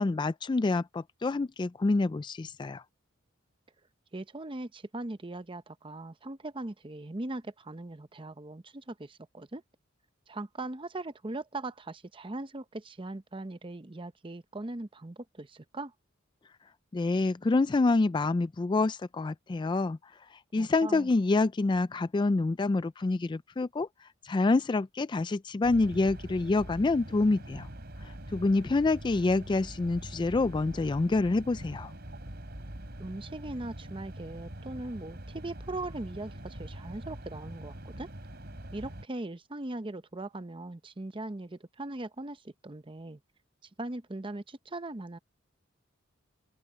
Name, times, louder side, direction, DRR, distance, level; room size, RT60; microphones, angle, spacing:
voice 1, 0.0-2.8 16.9-20.0 20.5-23.9 24.2-27.7 28.3-31.9, left 3 dB, 25° left, 0.3 m, -27 dB
voice 2, 4.1-9.6 10.3-15.9 20.6-21.1 33.0-38.1 38.7-43.2 43.8-45.2, right 2 dB, 25° right, 0.8 m, -40 dB
sound 1, 25.6-39.1, right 1 dB, 55° right, 3.3 m, -44 dB
open air
head